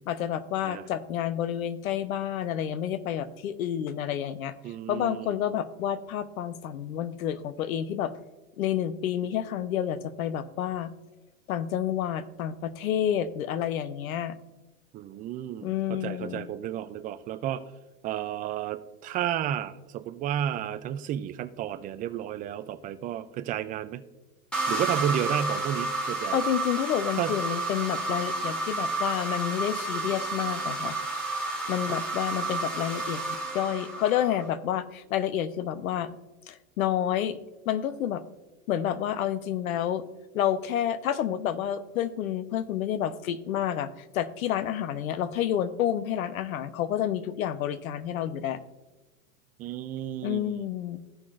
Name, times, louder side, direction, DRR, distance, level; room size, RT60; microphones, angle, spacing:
voice 1, 0.1-4.5 4.9-8.1 8.6-10.9 11.5-14.3 15.6-16.5 26.3-31.0 31.7-36.1 36.5-37.4 37.6-38.2 38.7-40.0 40.3-48.6 50.2-51.0, left 10 dB, 75° left, 12 dB, 0.9 m, -29 dB
voice 2, 4.6-5.4 14.9-17.6 18.0-24.0 24.7-26.4 27.2-27.3 31.9-32.0 49.6-50.6, right 10 dB, 20° right, 12 dB, 0.3 m, -32 dB
sound 1, 24.5-34.5, right 3 dB, ahead, 2.0 m, -31 dB
16.0 x 5.8 x 2.5 m, 1.1 s
hypercardioid pair, 110°, 42 cm